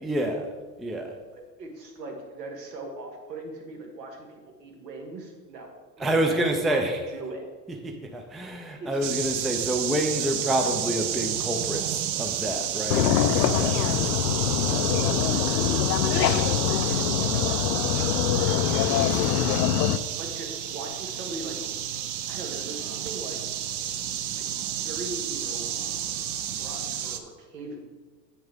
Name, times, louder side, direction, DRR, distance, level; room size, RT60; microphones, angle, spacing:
voice 1, 0.0-0.5 0.8-1.2 6.0-7.0 7.8-13.8, right 1 dB, ahead, 4 dB, 0.4 m, -28 dB
voice 2, 1.3-6.8 7.1-7.4 8.8-9.0 13.6-14.1 14.4-15.6 16.0-18.6 19.3-19.7 20.2-21.6 22.3-23.4 24.4-24.5 24.8-25.7 26.6-27.8, right 2 dB, 80° right, 1 dB, 1.9 m, -40 dB
sound 1, 9.0-27.2, right 10 dB, 50° right, 0.8 m, -30 dB
sound 2, 12.9-20.0, left 10 dB, 75° left, 0.6 m, -24 dB
7.9 x 7.1 x 3.5 m, 1.3 s
hypercardioid pair, 95°, 49 cm